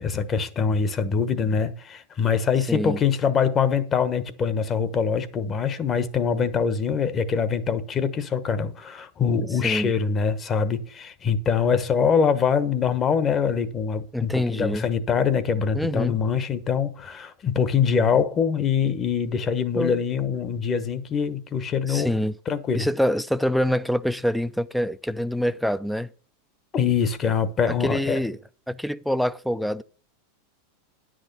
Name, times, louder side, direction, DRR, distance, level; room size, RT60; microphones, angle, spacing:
voice 1, 0.0-22.1 22.5-22.9 26.7-28.2, left 6 dB, 30° left, 1.1 m, -24 dB
voice 2, 2.7-3.0 9.6-9.9 14.1-14.9 15.7-16.2 19.8-20.0 21.9-22.3 22.7-26.1 27.7-28.4 28.7-29.8, equal, ahead, 0.5 m, -25 dB
10.0 x 6.3 x 6.8 m
supercardioid pair, 125°, 0 cm